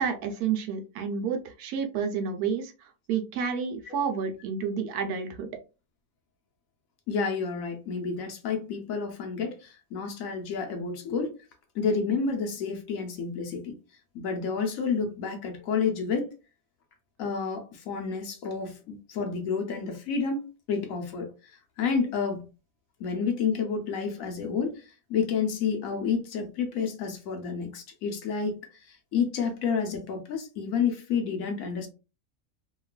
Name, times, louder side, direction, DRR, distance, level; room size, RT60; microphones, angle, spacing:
voice 1, 0.0-5.5, right 6 dB, 80° right, 1.1 m, -30 dB
voice 2, 7.1-11.3 11.7-13.8 14.1-16.3 17.2-22.4 23.0-31.9, left 5 dB, 65° left, 1.0 m, -30 dB
2.9 x 2.3 x 2.2 m
omnidirectional pair, 1.6 m